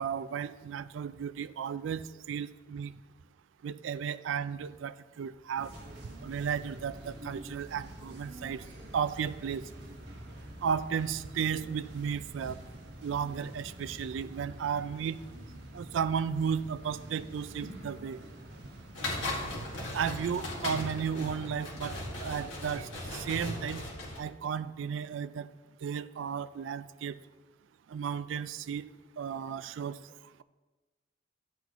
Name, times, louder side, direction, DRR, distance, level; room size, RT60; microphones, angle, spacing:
voice 1, 0.0-2.9 3.6-5.7 6.2-8.6 8.9-9.7 10.6-12.6 13.0-15.2 15.7-18.2 19.9-23.8 24.2-25.5 25.8-27.2 27.9-28.8 29.2-30.0, right 7 dB, 80° right, 14 dB, 0.3 m, -34 dB
sound 1, 5.6-22.4, right 1 dB, 60° right, 1.6 m, -47 dB
sound 2, 18.9-24.2, left 2 dB, 80° left, 2.0 m, -37 dB
11.5 x 8.2 x 3.0 m, 1.2 s
head